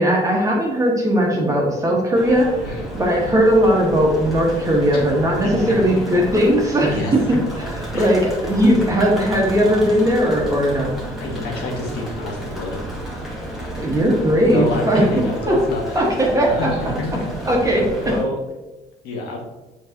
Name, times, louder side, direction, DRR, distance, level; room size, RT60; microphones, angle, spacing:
voice 1, 0.0-2.5 2.9-7.4 7.9-10.9 13.8-15.1 15.5-15.6 15.9-16.9 17.5-18.1, equal, 20° right, -2 dB, 2.0 m, -18 dB
sound 1, 2.1-18.2, right 1 dB, ahead, 2.2 m, -31 dB
voice 2, 5.6-6.0 6.9-7.5 7.9-8.2 11.2-12.9 14.4-16.1 16.4-17.3 18.1-18.4 19.0-19.4, left 2 dB, 80° left, -1 dB, 1.8 m, -28 dB
7.7 x 4.5 x 3.1 m, 1.0 s
cardioid pair, 110°, 17 cm